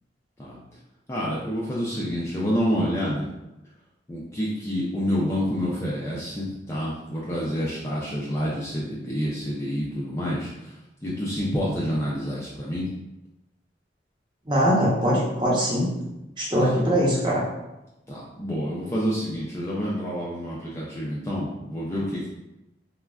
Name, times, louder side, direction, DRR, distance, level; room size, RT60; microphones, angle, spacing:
voice 1, 1.1-3.3 4.1-10.7 11.0-12.9 16.6-16.8 18.1-22.3, equal, 15° left, -6 dB, 0.3 m, -28 dB
voice 2, 14.5-15.9 16.4-17.4, equal, 25° right, -6 dB, 0.7 m, -22 dB
3.4 x 2.1 x 2.3 m, 0.95 s
head